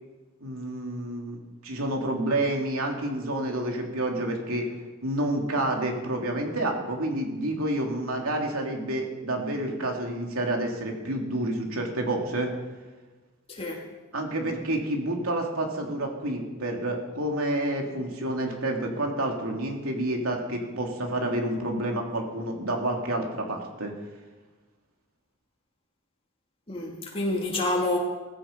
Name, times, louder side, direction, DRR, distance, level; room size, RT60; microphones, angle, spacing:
voice 1, 0.4-1.4 1.6-4.7 5.0-12.5 14.1-23.9, right 1 dB, 90° right, 1 dB, 3.0 m, -29 dB
voice 2, 13.5-13.8 26.7-28.0, left 2 dB, 25° left, -2 dB, 3.1 m, -28 dB
17.5 x 15.0 x 5.3 m, 1.2 s
head